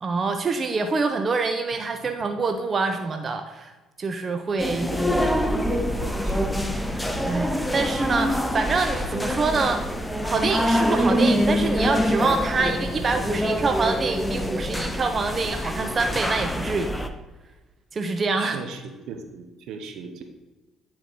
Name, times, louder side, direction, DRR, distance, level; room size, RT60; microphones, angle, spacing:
voice 1, 0.0-3.7 4.0-4.9 6.9-9.9 10.2-17.1 17.9-18.6, right 4 dB, 40° right, 7 dB, 0.6 m, -26 dB
sound 1, 4.6-17.1, equal, 5° left, 0.7 m, -25 dB
voice 2, 4.7-6.6 18.4-20.2, right 5 dB, 70° right, 6 dB, 0.9 m, -37 dB
9.0 x 4.3 x 4.1 m, 1.2 s
supercardioid pair, 65°, 0 cm